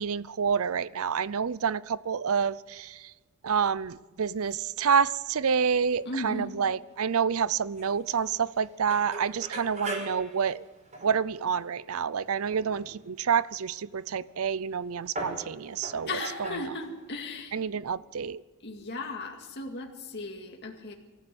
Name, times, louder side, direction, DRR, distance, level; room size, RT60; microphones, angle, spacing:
voice 1, 0.0-3.1 3.4-10.7 11.0-16.1 17.5-18.4, right 6 dB, 65° right, 0.5 m, -28 dB
sound 1, 5.6-6.2 6.5-6.9 7.4-7.5 7.8-7.9 8.5-8.6 8.9-12.0 12.5-13.0 14.3-14.4 15.0-17.2, right 1 dB, 35° right, 5.6 m, -40 dB
voice 2, 6.1-6.5 16.1-17.6 18.6-21.0, left 2 dB, 50° left, 2.2 m, -36 dB
24.5 x 14.0 x 7.9 m
head